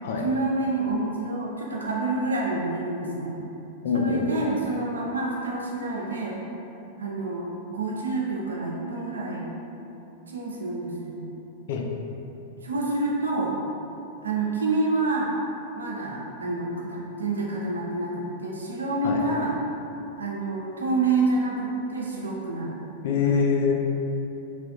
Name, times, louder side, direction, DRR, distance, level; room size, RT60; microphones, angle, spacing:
voice 1, 0.2-3.3 3.9-6.4 7.0-9.5 10.3-11.2 12.6-13.5 14.2-15.3 15.7-19.5 20.2-22.7 23.2-23.3, right 2 dB, 85° right, -3 dB, 0.6 m, -28 dB
voice 2, 3.8-4.3 11.7-11.9 19.0-19.3 23.0-23.7, left 5 dB, 65° left, 1 dB, 0.4 m, -24 dB
3.2 x 2.9 x 2.7 m, 2.9 s
hypercardioid pair, 100°, 0 cm